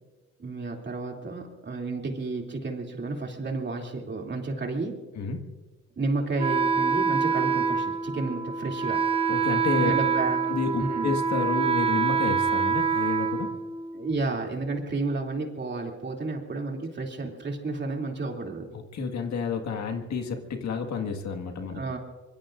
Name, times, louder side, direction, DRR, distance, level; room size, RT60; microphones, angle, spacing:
voice 1, 0.4-4.9 6.0-9.0 9.8-10.5 10.8-11.1 13.9-18.7 21.6-22.0, right 3 dB, 35° right, 1 dB, 2.9 m, -31 dB
voice 2, 5.2-5.5 9.3-9.9 10.5-13.6 18.7-21.8, left 5 dB, 65° left, 4 dB, 1.9 m, -30 dB
Wind instrument woodwind instrument, 6.4-14.1, right 6 dB, 20° right, 1.0 m, -26 dB
25.0 x 22.5 x 2.6 m, 1.3 s
cardioid pair, 90°, 30 cm